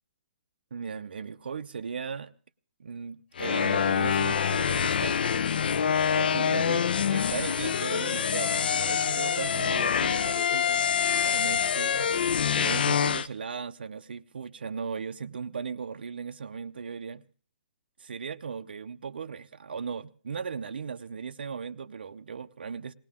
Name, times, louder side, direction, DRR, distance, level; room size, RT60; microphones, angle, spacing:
voice 1, 0.7-2.3 2.8-5.2 6.1-6.8 7.1-17.2 18.0-22.9, right 6 dB, 85° right, 0.7 m, -37 dB
sound 1, 3.4-13.3, left 7 dB, 70° left, 0.8 m, -26 dB
19.0 x 18.0 x 3.6 m
hypercardioid pair, 160°, 5 cm